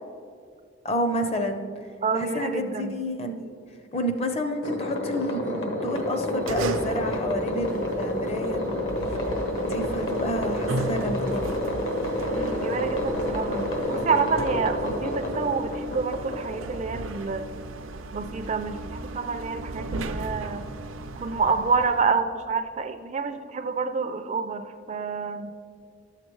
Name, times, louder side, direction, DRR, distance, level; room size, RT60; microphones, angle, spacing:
voice 1, 0.8-1.6 2.1-3.5 3.9-8.8 9.6-11.5, equal, 30° left, 6 dB, 0.6 m, -29 dB
voice 2, 2.0-3.0 12.2-17.5 18.1-20.7 21.2-25.5, right 5 dB, 35° right, 8 dB, 0.3 m, -28 dB
sound 1, 4.6-17.3, left 1 dB, 65° left, 1.2 m, -29 dB
sound 2, 6.0-22.0, right 2 dB, 90° right, 0.5 m, -36 dB
12.0 x 7.3 x 3.1 m, 2.2 s
head